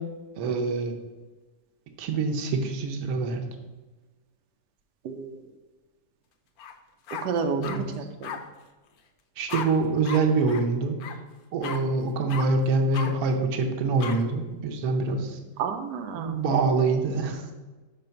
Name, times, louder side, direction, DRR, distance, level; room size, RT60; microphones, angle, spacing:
voice 1, 0.4-1.0 2.0-3.4 7.6-7.9 9.4-10.9 11.5-15.4 16.2-17.5, right 3 dB, 65° right, 3 dB, 1.3 m, -25 dB
voice 2, 5.0-5.4 7.2-8.4 15.6-16.4, right 5 dB, 90° right, 5 dB, 1.2 m, -31 dB
sound 1, 6.6-6.7 7.1-7.8 8.2-8.4 9.5-9.7 10.0-10.2 10.5-10.6 11.0-11.1 11.6-11.8 12.3-12.4 12.9-13.1 14.0-14.2, left 7 dB, 70° left, 1.1 m, -35 dB
5.2 x 4.1 x 5.7 m, 1.2 s
omnidirectional pair, 1.8 m